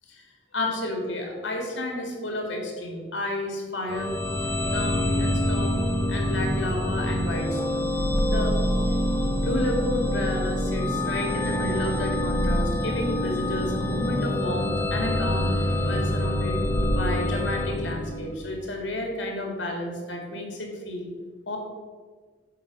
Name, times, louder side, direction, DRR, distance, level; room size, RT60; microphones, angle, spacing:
voice 1, 0.1-4.1 4.4-7.8 8.3-8.6 9.4-15.5 15.8-16.6 16.9-21.1 21.5-21.6, left 1 dB, 85° left, 1 dB, 2.0 m, -31 dB
sound 1, 3.9-18.6, equal, 15° left, 0.8 m, -26 dB
10.0 x 4.3 x 6.1 m, 1.5 s
head